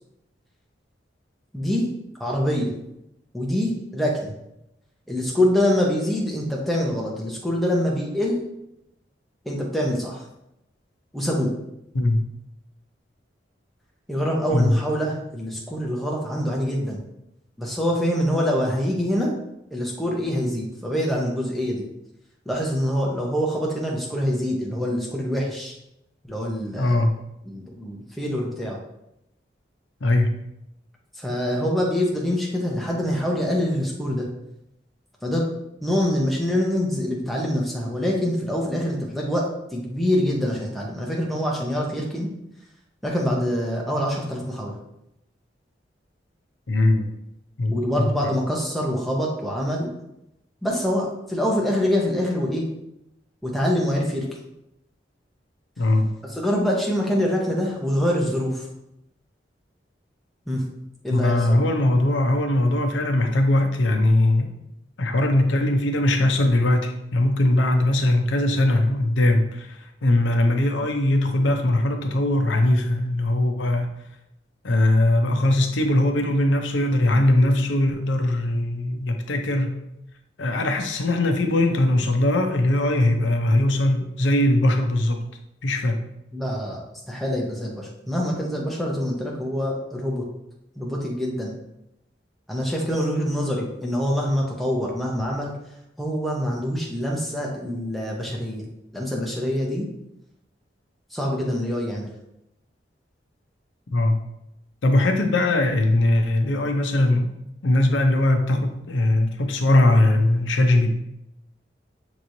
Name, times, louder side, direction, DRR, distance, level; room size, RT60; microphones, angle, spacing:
voice 1, 1.5-1.9 2.2-2.7 3.3-4.3 5.1-8.4 9.4-10.2 11.1-11.5 14.1-17.0 17.6-19.3 19.7-21.8 22.5-25.7 26.3-27.0 27.5-28.8 31.1-34.3 35.2-35.5 35.8-42.3 43.0-44.8 47.7-49.9 50.6-52.7 53.4-54.3 56.3-58.7 60.5-60.6 61.0-61.6 86.3-86.8 87.1-90.3 90.8-91.5 92.5-95.5 96.0-98.7 98.9-99.9 101.1-102.1, equal, ahead, -3 dB, 0.8 m, -25 dB
voice 2, 26.8-27.1 30.0-30.3 46.7-47.1 47.6-48.3 55.8-56.1 61.1-64.5 65.0-73.9 74.6-79.8 80.4-85.2 85.6-86.0 103.9-104.2 104.8-107.3 107.6-110.9, left 1 dB, 90° left, 5 dB, 0.6 m, -20 dB
6.1 x 3.0 x 2.7 m, 0.83 s
head